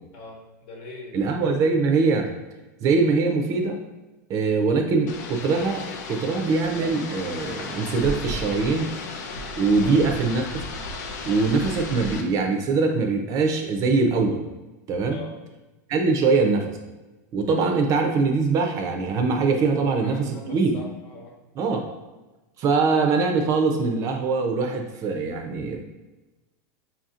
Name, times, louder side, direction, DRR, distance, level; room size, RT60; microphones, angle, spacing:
voice 1, 0.1-1.2 9.8-10.0 15.1-15.3 19.8-21.3, left 3 dB, 55° left, 0 dB, 1.1 m, -42 dB
voice 2, 1.1-2.3 2.8-3.8 4.3-8.9 9.6-10.6 11.3-14.4 14.9-15.2 15.9-16.8 17.3-20.8 21.6-21.8 22.6-25.8, right 4 dB, 35° right, 4 dB, 0.5 m, -22 dB
sound 1, 5.1-12.2, left 2 dB, 75° left, 0.6 m, -34 dB
5.5 x 2.7 x 2.4 m, 1.1 s
supercardioid pair, 130°, 10 cm